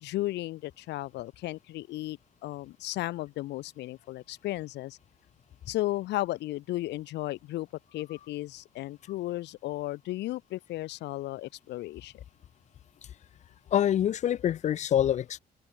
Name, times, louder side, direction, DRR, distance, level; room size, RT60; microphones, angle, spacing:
voice 1, 0.0-5.0 5.7-12.2, left 16 dB, 90° left, 0.6 m, -35 dB
voice 2, 13.7-15.4, left 10 dB, 45° left, 0.5 m, -25 dB
open air
cardioid pair, 175°, 17 cm